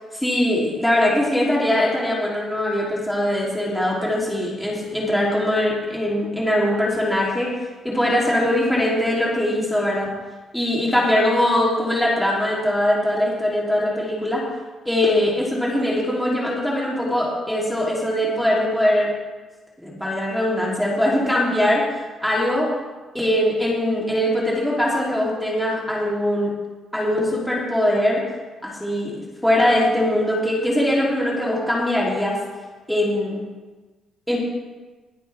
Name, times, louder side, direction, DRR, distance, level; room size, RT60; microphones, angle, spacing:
voice 1, 0.1-7.6 7.8-10.1 10.5-14.4 14.8-19.1 19.8-21.8 22.2-22.7 23.1-26.5 26.9-28.2 28.6-29.1 29.4-32.4 32.9-33.4 34.3-34.4, left 1 dB, 5° left, -5 dB, 3.2 m, -21 dB
21.0 x 8.1 x 3.5 m, 1.2 s
cardioid pair, 90°, 0 cm